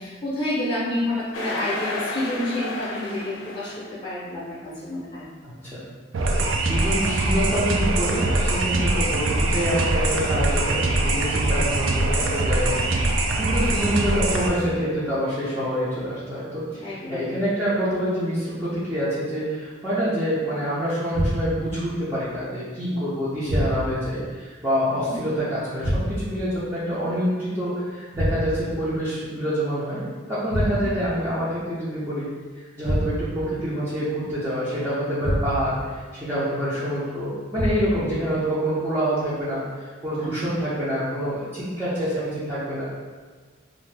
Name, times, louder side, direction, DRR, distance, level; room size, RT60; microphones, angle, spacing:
voice 1, 0.0-5.3 13.3-13.5 16.8-17.2 24.9-25.1 30.6-30.7 40.2-40.3, left 1 dB, 25° left, -8 dB, 0.6 m, -29 dB
sound 1, 1.3-3.9, left 2 dB, 80° left, 0.5 m, -32 dB
voice 2, 5.4-5.8 6.6-12.9 13.4-30.0 30.3-32.3 32.8-42.8, equal, 15° right, -12 dB, 0.6 m, -26 dB
sound 2, 6.1-14.5, right 2 dB, 85° right, 0.4 m, -23 dB
sound 3, 21.1-21.7 23.5-24.1 25.8-26.4 28.1-28.8 30.5-31.1 32.8-33.5 35.2-35.8 37.5-38.1, equal, 65° right, 0.8 m, -26 dB
2.6 x 2.6 x 3.2 m, 1.4 s
head